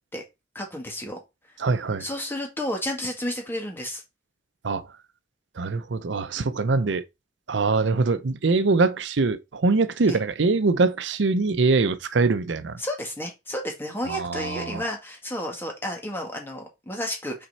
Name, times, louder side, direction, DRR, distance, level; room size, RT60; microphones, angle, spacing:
voice 1, 0.6-1.2 2.0-4.0 10.1-10.2 12.8-17.5, left 1 dB, 10° left, 1.8 m, -31 dB
voice 2, 1.6-2.0 4.6-4.9 5.6-7.1 7.5-12.8 14.1-14.8, right 3 dB, 85° right, 0.6 m, -23 dB
6.0 x 4.3 x 4.1 m
head